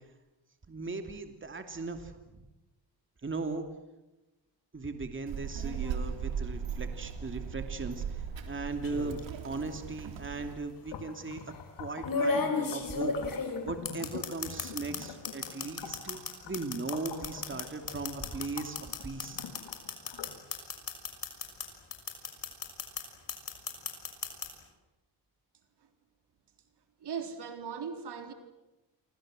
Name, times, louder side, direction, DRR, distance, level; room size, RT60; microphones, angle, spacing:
voice 1, 0.7-2.1 3.2-3.7 4.7-9.2 9.4-11.4 11.8-13.1 13.6-19.4, right 3 dB, 25° right, 2.9 m, -38 dB
Child speech kid speaking, 5.3-10.5, right 7 dB, 85° right, 3.5 m, -38 dB
sound 1, 8.8-9.2 10.4-10.5 12.0-15.0 15.2-21.6 21.9-23.0 23.3-24.5, left 4 dB, 50° left, 6.1 m, -33 dB
sound 2, 10.8-20.4, left 7 dB, 80° left, 3.4 m, -46 dB
voice 2, 27.0-28.3, right 6 dB, 65° right, 3.8 m, -38 dB
28.5 x 25.0 x 7.8 m
cardioid pair, 90°, 44 cm